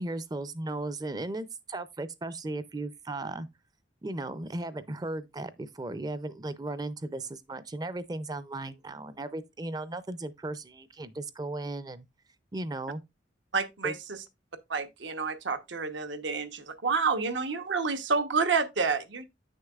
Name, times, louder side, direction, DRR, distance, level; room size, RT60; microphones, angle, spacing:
voice 1, 0.0-3.5 4.0-12.1 12.5-13.0 13.8-14.0, right 2 dB, 20° right, 0.4 m, -36 dB
voice 2, 13.5-14.2 14.7-19.3, right 5 dB, 85° right, 1.0 m, -29 dB
9.1 x 6.4 x 2.4 m
head